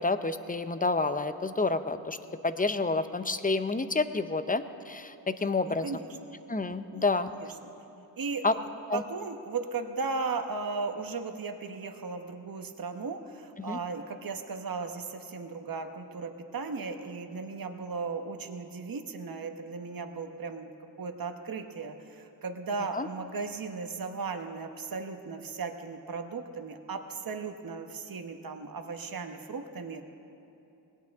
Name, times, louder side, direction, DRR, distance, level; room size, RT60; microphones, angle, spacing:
voice 1, 0.0-2.2 2.4-5.9 6.5-7.3 8.4-8.6 8.9-9.0 13.6-13.8 22.9-23.1, left 3 dB, 20° left, 11 dB, 0.6 m, -29 dB
voice 2, 5.6-6.1 6.9-7.7 8.2-8.4 8.9-20.7 21.0-30.0, right 4 dB, 50° right, 6 dB, 1.0 m, -36 dB
19.5 x 17.5 x 3.6 m, 2.9 s
cardioid pair, 60°, 45 cm